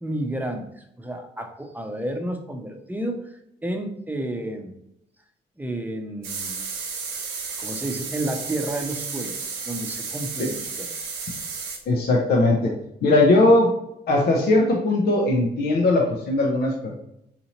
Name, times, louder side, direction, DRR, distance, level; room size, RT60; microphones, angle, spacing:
voice 1, 0.0-4.7 5.6-6.6 7.6-9.3 9.7-11.1, right 1 dB, 10° right, 4 dB, 0.8 m, -31 dB
sound 1, 6.2-11.8, right 5 dB, 85° right, 0.8 m, -33 dB
voice 2, 11.9-12.7 13.0-13.7 14.1-16.9, left 2 dB, 60° left, -1 dB, 0.7 m, -19 dB
4.2 x 2.7 x 2.9 m, 0.77 s
supercardioid pair, 55°, 19 cm